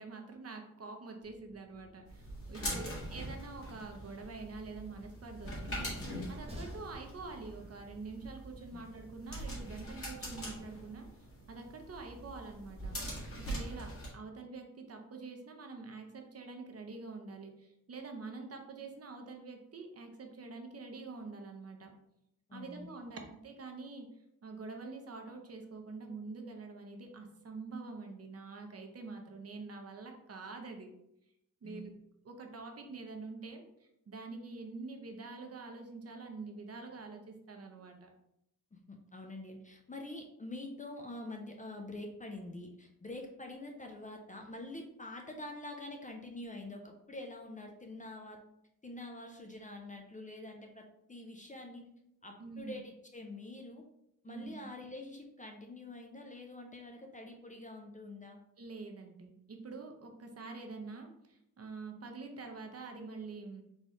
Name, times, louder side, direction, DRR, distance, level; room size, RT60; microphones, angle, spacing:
voice 1, 0.0-5.9 6.3-11.1 11.5-13.0 13.5-21.9 22.5-24.1 24.4-30.9 31.6-31.9 32.2-38.1 52.4-52.8 54.3-54.7 58.6-63.6, right 3 dB, 45° right, 3 dB, 0.7 m, -46 dB
Train, 1.2-9.0, equal, 20° right, 0.9 m, -54 dB
sound 1, 2.1-14.1, equal, 40° left, 1.7 m, -43 dB
voice 2, 2.6-3.1 8.7-8.8 22.5-22.9 31.6-31.8 38.7-48.4 48.8-51.9 52.2-53.9 54.2-58.4, left 2 dB, 25° left, 3 dB, 0.4 m, -46 dB
4.1 x 3.1 x 3.7 m, 0.79 s
wide cardioid pair, 150°, 33 cm